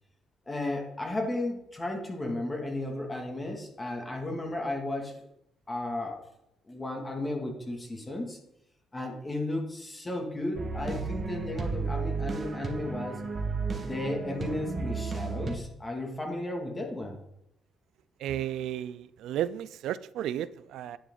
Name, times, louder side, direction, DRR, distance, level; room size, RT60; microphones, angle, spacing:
voice 1, 0.5-5.1 5.7-6.2 6.7-8.4 8.9-13.2 13.8-17.2, left 1 dB, 20° left, 1 dB, 2.6 m, -34 dB
sound 1, 10.6-15.6, right 4 dB, 40° right, 1.8 m, -33 dB
voice 2, 18.2-21.0, right 11 dB, 85° right, 16 dB, 0.5 m, -33 dB
10.5 x 8.3 x 4.0 m, 0.80 s
cardioid pair, 90°, 0 cm